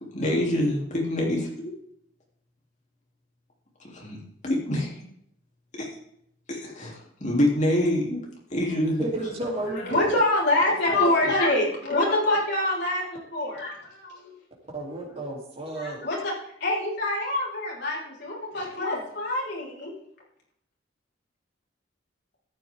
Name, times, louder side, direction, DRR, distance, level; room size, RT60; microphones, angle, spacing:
voice 1, 0.1-1.7 3.9-4.2 4.4-4.9 5.8-5.9 6.5-8.3 8.5-9.1, left 1 dB, 40° left, -2 dB, 3.4 m, -25 dB
voice 2, 9.0-10.2 10.9-11.3 14.7-16.0, right 1 dB, 30° right, -2 dB, 3.5 m, -32 dB
voice 3, 9.8-14.3 15.8-16.3 16.6-19.9, left 1 dB, 60° left, -4 dB, 5.1 m, -25 dB
14.0 x 9.3 x 3.8 m, 0.71 s
head